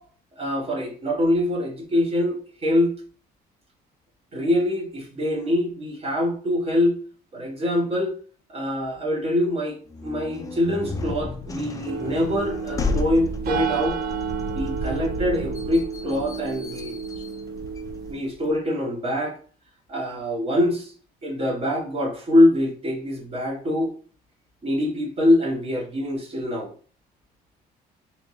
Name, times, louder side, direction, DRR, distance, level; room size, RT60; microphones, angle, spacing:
voice 1, 0.4-2.9 4.3-7.0 7.3-8.1 8.5-9.8 10.0-14.0 14.5-16.9 18.1-19.4 19.9-20.9 21.2-23.9 24.6-26.7, left 1 dB, 35° right, 1.4 m, -24 dB
sound 1, 9.9-18.6, left 3 dB, 20° left, 0.4 m, -34 dB
sound 2, 11.9-18.1, right 5 dB, 60° right, 0.6 m, -30 dB
3.5 x 2.8 x 3.1 m
cardioid pair, 110°, 17 cm